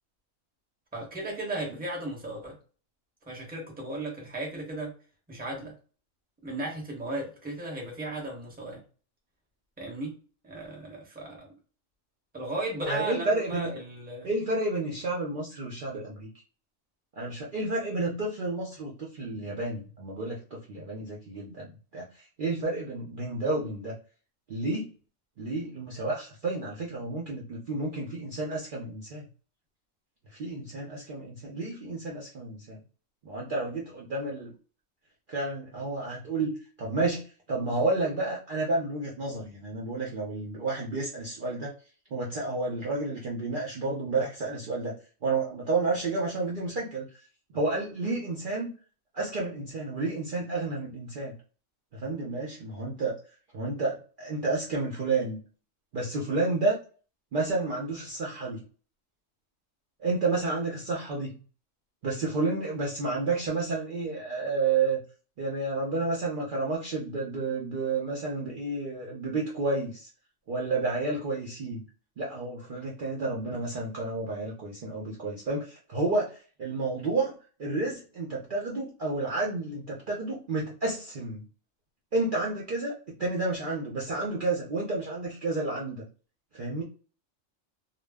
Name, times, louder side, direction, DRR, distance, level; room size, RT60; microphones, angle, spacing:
voice 1, 0.9-2.6 3.3-4.9 5.3-5.7 6.4-8.8 9.8-10.1 10.4-11.5 12.3-14.3, right 2 dB, 10° right, 0.7 m, -35 dB
voice 2, 12.9-13.7 14.2-16.3 17.2-22.1 22.4-23.9 24.5-24.9 25.4-29.3 30.3-32.8 33.2-34.5 35.3-36.5 36.8-41.7 42.1-44.9 45.2-47.1 47.5-48.7 49.1-51.3 51.9-53.2 53.5-55.4 55.9-56.8 57.3-58.6 60.0-61.4 62.0-65.0 65.4-70.1 70.5-71.8 72.2-81.4 82.1-86.0 86.5-86.8, right 3 dB, 55° right, 0.6 m, -31 dB
2.2 x 2.0 x 3.4 m
omnidirectional pair, 1.3 m